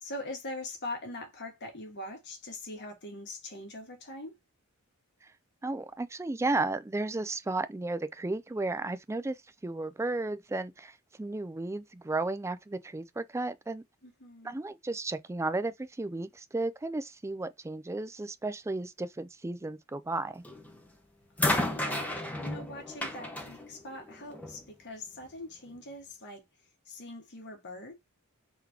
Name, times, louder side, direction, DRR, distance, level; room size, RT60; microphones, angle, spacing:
voice 1, 0.0-4.4 14.0-14.6 21.5-26.4 26.8-27.9, left 2 dB, 50° left, 1.4 m, -42 dB
voice 2, 5.6-13.8 14.4-20.4, right 2 dB, 10° right, 0.4 m, -34 dB
sound 1, 20.4-20.8 21.4-24.6 25.7-25.8, left 1 dB, 5° left, 0.9 m, -33 dB
3.8 x 3.0 x 3.4 m
head